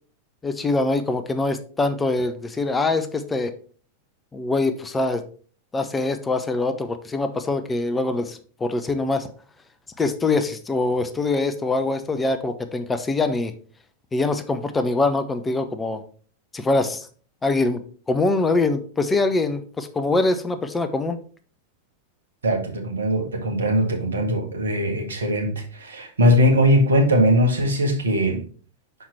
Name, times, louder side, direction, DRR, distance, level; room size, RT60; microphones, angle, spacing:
voice 1, 0.4-3.5 4.3-5.2 5.7-9.3 10.0-13.5 14.1-16.0 16.5-17.1 17.4-17.8 18.1-21.2, left 3 dB, 15° left, 9 dB, 0.6 m, -23 dB
voice 2, 22.4-28.4, equal, 70° right, 3 dB, 1.3 m, -20 dB
5.8 x 4.5 x 4.1 m, 0.42 s
figure-of-eight pair, 90°, 0 cm